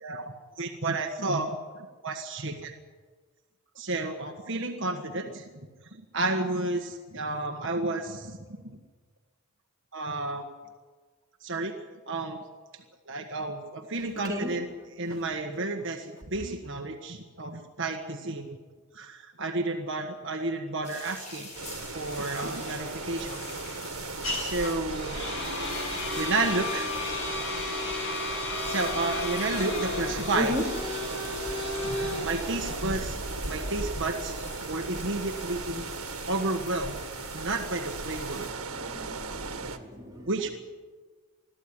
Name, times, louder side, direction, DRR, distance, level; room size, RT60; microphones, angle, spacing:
voice 1, 0.0-2.7 3.7-5.4 6.1-8.4 8.6-8.8 9.9-10.4 11.4-11.7 12.1-12.4 12.7-18.6 18.9-21.5 21.9-23.4 24.3-25.2 26.1-26.9 28.6-30.6 31.8-33.2 33.5-35.8 36.3-37.0 37.3-38.5 40.3-40.5, right 2 dB, 60° right, 4 dB, 1.5 m, -31 dB
sound 1, 20.8-38.5, left 2 dB, 30° left, 6.7 m, -45 dB
sound 2, 21.5-39.8, right 3 dB, 90° right, 1.8 m, -37 dB
sound 3, 21.9-35.7, left 2 dB, 60° left, 6.0 m, -34 dB
voice 2, 38.8-40.3, left 1 dB, 15° right, -1 dB, 3.1 m, -34 dB
21.5 x 14.0 x 10.0 m, 1.4 s
head